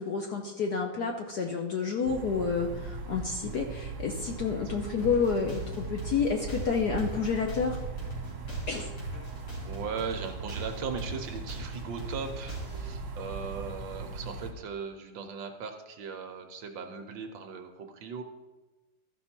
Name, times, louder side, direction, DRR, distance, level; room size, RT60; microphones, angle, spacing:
voice 1, 0.0-7.8 8.7-8.9, left 5 dB, 65° left, 2 dB, 1.0 m, -29 dB
sound 1, 2.0-14.5, right 3 dB, 50° right, 1.6 m, -39 dB
sound 2, 5.0-12.9, equal, 40° left, 2.8 m, -42 dB
voice 2, 9.6-18.2, right 5 dB, 70° right, 5 dB, 1.4 m, -38 dB
13.5 x 5.5 x 4.4 m, 1.1 s
omnidirectional pair, 2.4 m